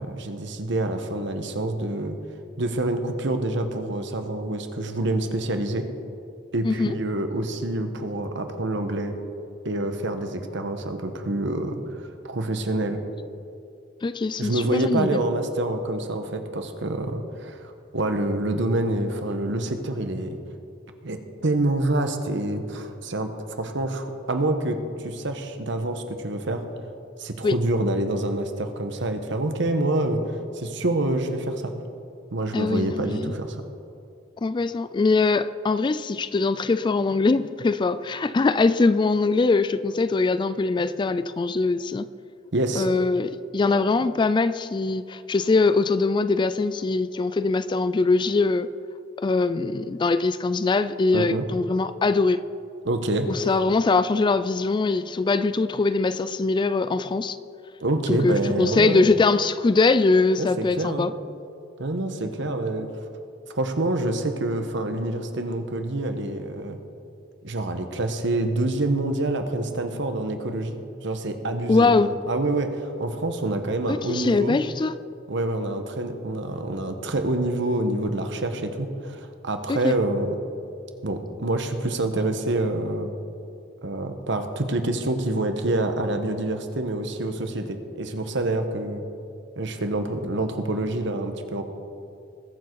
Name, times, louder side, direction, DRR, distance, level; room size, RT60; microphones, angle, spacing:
voice 1, 0.0-2.2 2.6-5.9 6.5-9.1 9.6-13.0 14.4-20.4 21.0-23.3 23.6-26.6 27.2-31.7 32.3-33.6 42.5-42.9 51.1-51.4 52.8-53.3 57.8-59.0 60.4-61.1 61.8-62.9 63.5-66.8 67.4-70.8 71.0-74.6 75.3-80.3 81.0-83.1 83.8-89.0 89.6-91.6, right 2 dB, 65° right, 1.2 m, -27 dB
voice 2, 6.6-7.0 14.0-15.2 27.4-27.6 32.5-33.3 34.4-42.1 42.8-48.7 49.2-52.4 53.3-57.4 58.1-61.1 71.7-72.2 73.9-74.9 79.7-80.0, left 3 dB, 25° left, 0.3 m, -22 dB
21.5 x 7.4 x 4.7 m
head